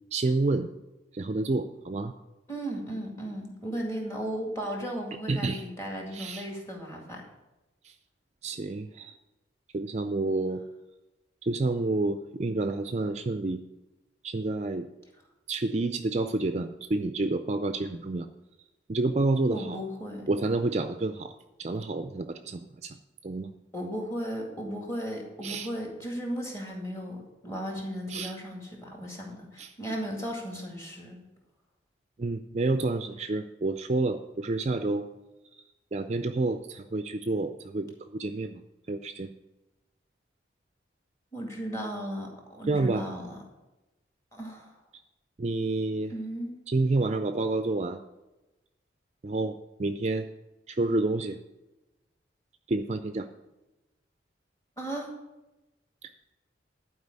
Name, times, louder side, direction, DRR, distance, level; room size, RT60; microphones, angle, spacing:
voice 1, 0.1-0.7 1.1-2.1 5.3-5.6 6.1-6.4 8.4-9.1 9.7-10.6 11.4-13.6 14.2-14.9 15.5-18.3 18.9-19.8 20.3-21.3 21.6-22.9 23.2-23.5 25.4-25.7 28.1-28.3 29.6-29.7 32.2-35.1 35.9-38.6 38.9-39.3 42.7-43.1 45.4-46.1 46.7-48.0 49.2-50.3 50.7-51.4 52.7-53.3, right 2 dB, 35° right, 9 dB, 0.4 m, -29 dB
voice 2, 2.5-7.2 19.5-20.3 23.7-31.2 41.3-43.4 44.3-44.7 46.1-46.6 54.8-55.1, equal, 15° left, 0 dB, 2.1 m, -35 dB
11.5 x 4.7 x 8.0 m, 1.0 s
head